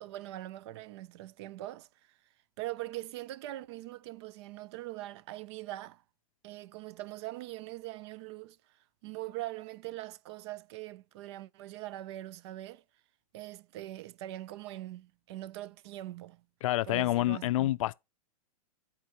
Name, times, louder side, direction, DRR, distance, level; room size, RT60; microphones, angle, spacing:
voice 1, 0.0-2.2 2.6-6.0 6.4-8.8 9.0-12.8 13.3-16.4 16.8-17.8, right 16 dB, 50° right, 0.4 m, -42 dB
voice 2, 16.6-17.9, left 16 dB, 60° left, 0.4 m, -28 dB
10.5 x 4.5 x 2.9 m
hypercardioid pair, 125°, 19 cm